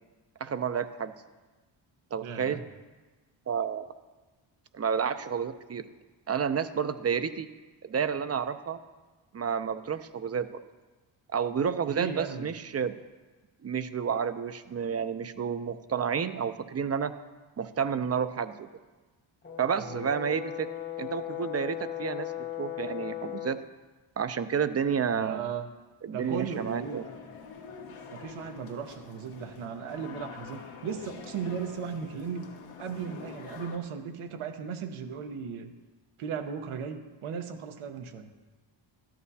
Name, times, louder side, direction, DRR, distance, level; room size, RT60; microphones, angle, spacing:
voice 1, 0.4-1.1 2.1-2.6 3.5-3.9 4.7-5.8 6.3-7.5 7.8-8.8 9.3-10.6 11.3-12.9 13.6-17.1 17.6-18.7 19.6-20.7 21.0-23.6 24.2-25.5 26.0-27.0, right 7 dB, 30° right, 11 dB, 0.6 m, -30 dB
voice 2, 2.2-2.6 11.9-12.5 19.9-20.0 25.1-25.7 26.1-27.1 28.1-32.5 32.8-35.7 36.2-38.3, right 7 dB, 80° right, 7 dB, 1.1 m, -36 dB
Brass instrument, 19.4-23.7, left 13 dB, 25° left, 0.9 m, -37 dB
sound 1, 26.2-33.8, left 5 dB, 75° left, 1.4 m, -46 dB
13.0 x 11.5 x 2.8 m, 1.3 s
cardioid pair, 80°, 50 cm